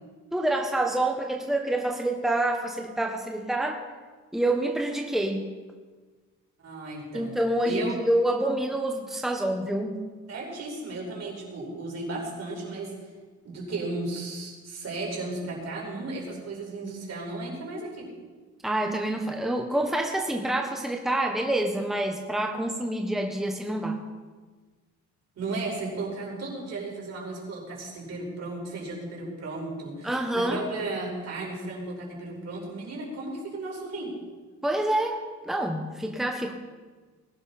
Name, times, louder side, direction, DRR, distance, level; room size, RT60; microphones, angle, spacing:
voice 1, 0.3-3.8 4.3-5.5 7.1-10.0 18.6-24.0 30.0-30.6 34.6-36.5, right 1 dB, ahead, 2 dB, 1.3 m, -27 dB
voice 2, 6.6-7.3 7.6-7.9 10.3-13.1 13.4-18.1 25.4-34.2, right 2 dB, 55° right, -2 dB, 5.4 m, -34 dB
20.0 x 11.5 x 4.3 m, 1.4 s
cardioid pair, 90°, 30 cm